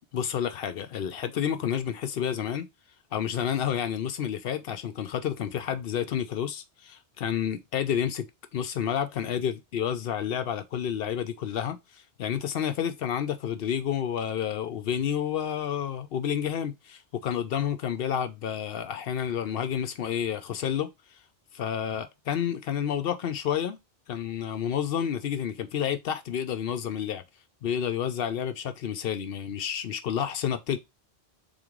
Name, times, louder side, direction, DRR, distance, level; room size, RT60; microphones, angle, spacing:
voice 1, 0.1-2.7 3.1-20.9 21.5-23.8 24.1-27.2 27.6-30.8, left 9 dB, 65° left, 0.8 m, -30 dB
3.9 x 3.0 x 3.6 m
omnidirectional pair, 1.1 m